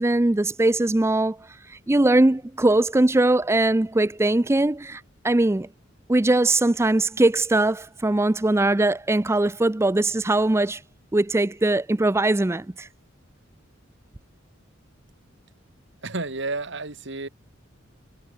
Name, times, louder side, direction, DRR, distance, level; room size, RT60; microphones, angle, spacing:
voice 1, 0.0-1.4 1.9-5.7 6.1-10.8 11.1-12.9, right 2 dB, 15° right, 0.5 m, -21 dB
voice 2, 16.0-17.3, right 3 dB, 65° right, 2.4 m, -31 dB
head